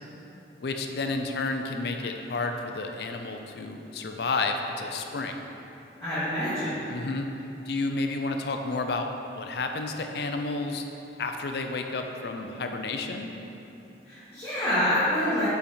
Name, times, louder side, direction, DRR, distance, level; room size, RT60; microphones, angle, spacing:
voice 1, 0.6-5.4 6.9-7.3 7.7-9.1 9.3-10.8 11.2-13.3, left 3 dB, 60° left, 5 dB, 0.5 m, -31 dB
voice 2, 6.0-6.8 14.0-15.5, left 1 dB, 15° left, -15 dB, 1.5 m, -26 dB
5.6 x 5.0 x 4.3 m, 3.0 s
head